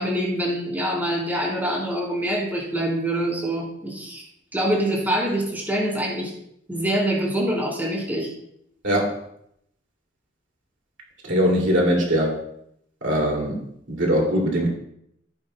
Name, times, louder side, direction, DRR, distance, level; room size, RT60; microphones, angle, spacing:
voice 1, 0.0-4.2 4.5-6.3 6.7-8.3, right 1 dB, 10° right, -4 dB, 4.1 m, -25 dB
voice 2, 8.8-9.2 11.2-12.4 13.0-14.7, equal, 70° right, -1 dB, 2.7 m, -21 dB
16.0 x 9.8 x 2.3 m, 0.73 s
head